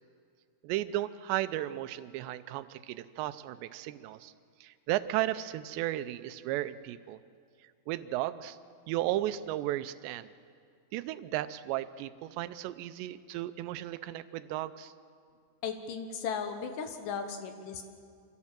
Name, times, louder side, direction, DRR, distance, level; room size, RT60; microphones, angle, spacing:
voice 1, 0.6-4.3 4.6-7.2 7.9-8.6 8.9-10.3 10.9-14.9, right 14 dB, 85° right, 12 dB, 2.9 m, -34 dB
voice 2, 15.6-17.8, left 6 dB, 65° left, 7 dB, 2.3 m, -36 dB
25.5 x 16.5 x 7.4 m, 2.2 s
omnidirectional pair, 5.0 m